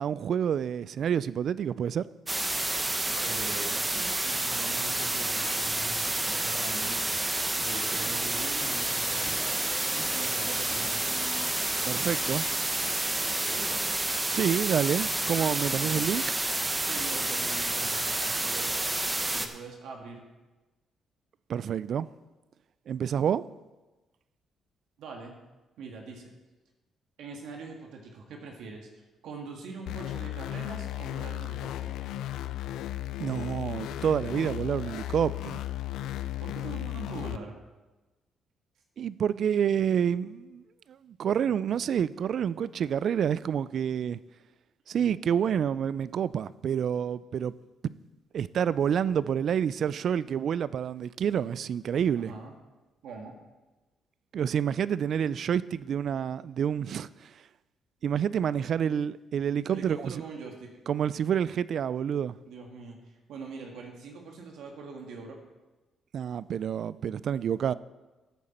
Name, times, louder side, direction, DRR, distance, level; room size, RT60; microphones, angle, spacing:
voice 1, 0.0-2.0 11.8-12.4 14.3-16.2 21.5-22.1 22.9-23.4 33.2-35.6 39.0-40.6 41.0-44.2 44.9-47.5 47.8-47.9 48.3-52.3 54.3-57.3 58.0-60.1 60.9-62.3 66.1-67.7, right 8 dB, 60° right, 0.4 m, -28 dB
sound 1, 2.3-19.5, right 2 dB, 15° right, 1.0 m, -29 dB
voice 2, 3.2-7.0 7.6-9.4 10.1-11.1 13.5-13.8 15.8-16.1 16.8-18.8 19.3-20.2 25.0-25.4 25.8-26.3 27.2-32.0 36.4-37.5 52.1-52.5 53.0-53.3 59.7-60.7 62.5-65.4, right 4 dB, 80° right, 1.7 m, -43 dB
Walk footsteps / Chatter / Squeak, 6.1-13.8, left 2 dB, 25° left, 2.0 m, -47 dB
sound 2, 29.9-37.4, left 13 dB, 85° left, 0.4 m, -35 dB
13.5 x 8.7 x 4.3 m
cardioid pair, 90°, 0 cm